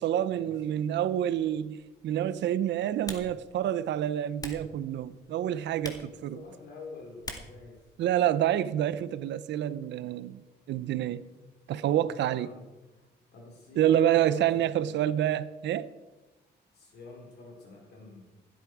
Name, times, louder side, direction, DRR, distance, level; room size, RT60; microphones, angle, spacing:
voice 1, 0.0-6.4 8.0-10.4 10.7-11.2 11.7-12.5 13.8-15.9, right 11 dB, 85° right, 0.7 m, -28 dB
Typing, 1.2-8.7, left 2 dB, 20° left, 2.1 m, -48 dB
voice 2, 5.6-7.9 10.9-11.2 11.8-12.7 13.0-15.1 16.7-18.3, left 3 dB, 70° left, 4.7 m, -48 dB
15.5 x 12.5 x 4.8 m
cardioid pair, 125°, 18 cm